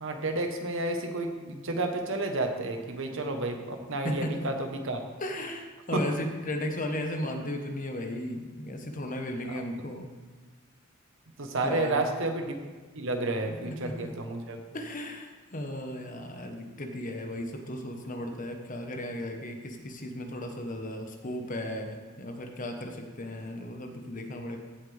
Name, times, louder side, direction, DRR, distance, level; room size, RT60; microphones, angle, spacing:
voice 1, 0.0-5.0 5.9-6.0 9.5-9.6 11.4-12.6 12.9-14.6, right 2 dB, 65° right, 5 dB, 1.2 m, -31 dB
voice 2, 4.0-4.5 5.2-10.1 11.6-12.0 13.6-14.1 14.7-24.6, left 1 dB, 40° left, 4 dB, 1.2 m, -35 dB
15.5 x 7.8 x 3.5 m, 1.3 s
head